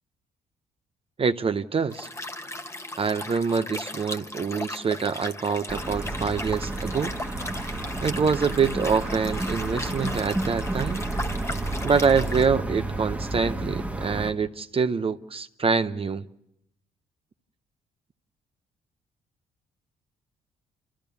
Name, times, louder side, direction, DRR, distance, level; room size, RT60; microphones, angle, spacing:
voice 1, 1.2-2.1 3.0-7.1 7.5-7.6 8.0-11.0 11.8-16.3, right 5 dB, 35° right, 0.7 m, -25 dB
Liquid, 1.9-12.5, left 1 dB, 15° left, 1.2 m, -37 dB
sound 1, 5.7-14.3, right 2 dB, 10° right, 1.4 m, -31 dB
29.0 x 14.0 x 7.0 m
supercardioid pair, 60°, 15 cm